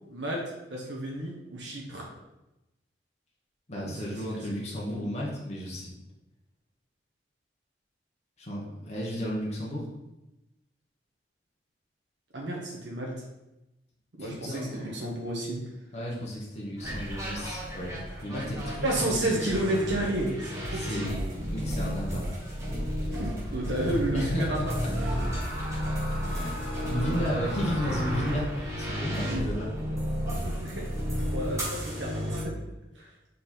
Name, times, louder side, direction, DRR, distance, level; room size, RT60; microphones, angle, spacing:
voice 1, 0.1-0.4 0.7-2.1 3.8-4.2 4.5-4.6 12.3-13.2 14.2-15.6 18.8-21.1 23.1-24.7 25.0-25.1 29.3-29.4 30.4-30.9 31.2-32.5 32.9-33.1, right 1 dB, 85° right, -2 dB, 1.2 m, -32 dB
voice 2, 3.7-5.9 8.4-9.9 14.2-15.0 15.9-18.8 19.1-19.4 20.7-21.2 21.5-22.3 24.1-24.9 26.3-29.7, equal, 40° left, -4 dB, 1.2 m, -33 dB
sound 1, 16.8-32.4, equal, 15° right, 2.0 m, -32 dB
Screaming, 24.9-28.7, equal, 50° right, 1.3 m, -40 dB
5.3 x 4.2 x 4.4 m, 0.95 s
head